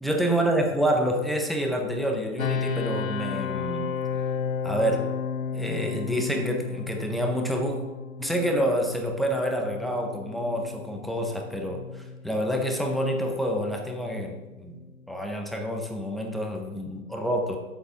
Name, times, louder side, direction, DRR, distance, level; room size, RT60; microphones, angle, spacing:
voice 1, 0.0-3.9 4.6-5.1 5.5-7.8 8.2-17.6, equal, ahead, 2 dB, 0.4 m, -28 dB
sound 1, 2.4-15.2, left 6 dB, 90° left, 0.6 m, -34 dB
8.0 x 6.9 x 5.7 m, 1.1 s
figure-of-eight pair, 115°, 40 cm